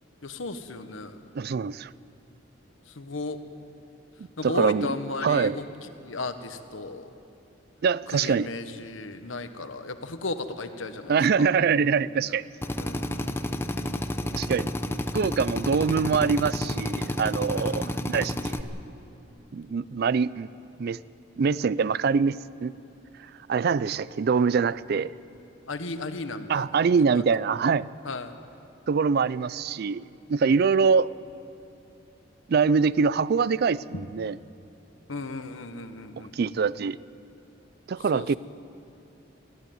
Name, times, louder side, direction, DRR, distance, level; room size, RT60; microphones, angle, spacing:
voice 1, 0.2-1.2 3.0-3.4 4.4-5.6 6.0-7.1 8.1-11.5 12.8-13.5 17.5-17.9 25.7-26.6 27.1-27.2 28.0-28.3 30.4-30.5 33.9-34.0 35.1-36.3 38.1-38.3, left 3 dB, 80° left, 9 dB, 1.2 m, -35 dB
voice 2, 1.3-1.9 4.4-5.0 5.2-5.6 7.8-8.5 11.1-12.4 14.3-14.7 15.1-18.7 19.5-20.5 20.8-21.0 21.4-22.7 23.5-25.1 26.5-27.9 28.9-31.1 32.5-34.4 36.2-37.0 37.9-38.4, right 5 dB, 50° right, 19 dB, 0.4 m, -24 dB
Drill, 12.6-18.6, left 1 dB, 10° left, 0.7 m, -30 dB
20.5 x 14.5 x 9.3 m, 2.7 s
head